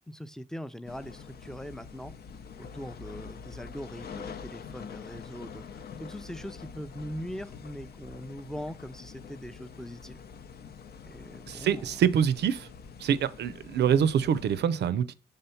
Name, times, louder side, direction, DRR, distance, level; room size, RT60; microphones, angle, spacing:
voice 1, 0.1-2.1 2.6-10.2 11.1-12.0, equal, 5° left, 0.4 m, -41 dB
sound 1, 0.9-14.6, left 6 dB, 70° left, 0.6 m, -45 dB
voice 2, 11.5-12.7 13.0-15.1, right 8 dB, 85° right, 0.4 m, -25 dB
5.6 x 3.5 x 5.6 m
cardioid pair, 100°, 17 cm